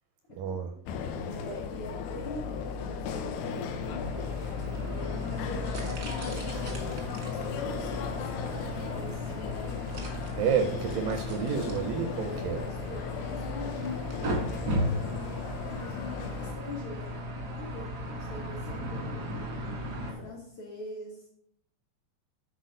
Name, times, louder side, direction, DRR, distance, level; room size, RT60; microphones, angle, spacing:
voice 1, 0.4-0.7 10.4-12.6, right 7 dB, 85° right, 7 dB, 1.9 m, -29 dB
sound 1, 0.9-16.5, left 6 dB, 85° left, 2.7 m, -36 dB
voice 2, 1.2-4.9 5.2-9.3 10.3-10.9 12.2-17.2 17.5-19.4 20.1-21.3, left 2 dB, 70° left, -2 dB, 1.3 m, -43 dB
sound 2, 3.2-20.1, left 1 dB, 65° right, 0.9 m, -36 dB
sound 3, 7.6-20.3, right 1 dB, 30° left, 0.6 m, -51 dB
10.5 x 4.2 x 5.3 m, 0.72 s
omnidirectional pair, 4.6 m